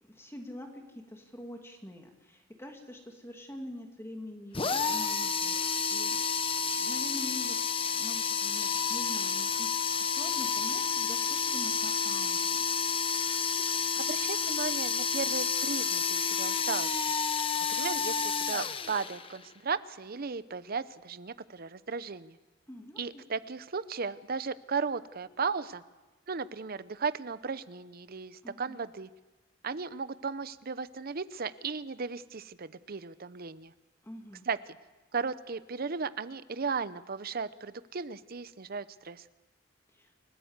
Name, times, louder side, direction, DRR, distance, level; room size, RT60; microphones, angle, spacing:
voice 1, 0.0-6.2 6.6-7.6 7.9-9.7 10.0-12.7 22.7-23.3 28.4-28.8 34.0-34.5 39.9-40.1, left 1 dB, 15° left, 2 dB, 2.4 m, -45 dB
sound 1, 4.5-19.4, left 6 dB, 30° left, 1.0 m, -30 dB
voice 2, 14.0-16.9 17.7-22.4 23.0-25.8 26.3-29.1 29.6-33.7 34.5-34.8 35.1-39.2, right 5 dB, 50° right, 15 dB, 0.8 m, -36 dB
29.5 x 14.5 x 8.1 m, 1.2 s
head